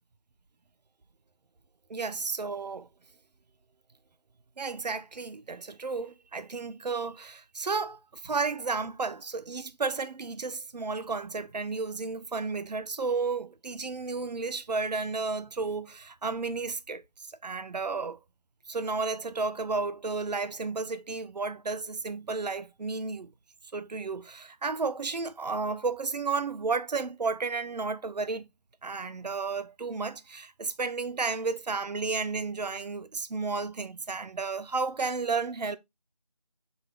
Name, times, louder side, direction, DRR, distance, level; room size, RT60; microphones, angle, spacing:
voice 1, 1.9-2.9 4.6-17.0 17.4-18.2 18.7-23.3 23.7-28.5 28.8-35.8, right 4 dB, 85° right, 0.5 m, -32 dB
3.8 x 2.3 x 3.2 m
figure-of-eight pair, 175°, 21 cm